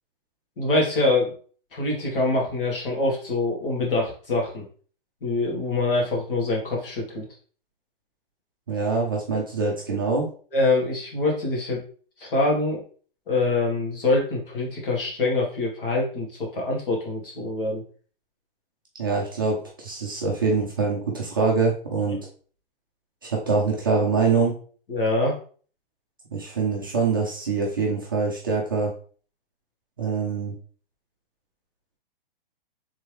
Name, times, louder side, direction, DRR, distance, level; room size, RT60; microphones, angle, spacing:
voice 1, 0.6-1.3 1.7-4.6 5.2-7.3 9.3-9.4 10.5-11.8 12.2-12.8 13.3-17.8 24.9-25.4, left 2 dB, 65° left, -2 dB, 1.9 m, -24 dB
voice 2, 8.7-10.3 19.0-22.2 23.2-24.6 26.3-28.9 30.0-30.5, right 4 dB, 25° right, -3 dB, 0.5 m, -24 dB
3.5 x 3.5 x 3.1 m, 0.42 s
hypercardioid pair, 180°, 29 cm